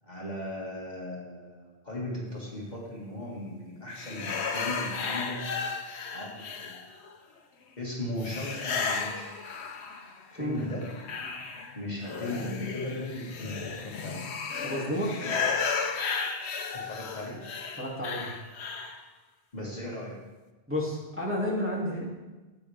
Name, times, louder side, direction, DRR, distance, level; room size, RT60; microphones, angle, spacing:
voice 1, 0.0-5.4 6.1-6.8 7.8-9.3 10.3-10.9 11.7-14.3 15.2-15.3 16.7-17.5 19.5-20.2, left 1 dB, 40° left, -4 dB, 2.2 m, -37 dB
sound 1, 3.9-7.1 8.2-10.2 10.6-19.0, left 5 dB, 80° left, 1.1 m, -34 dB
voice 2, 14.6-15.2 17.8-18.3 20.7-22.1, equal, 10° right, -6 dB, 2.5 m, -31 dB
14.5 x 8.9 x 3.5 m, 1.2 s
omnidirectional pair, 1.1 m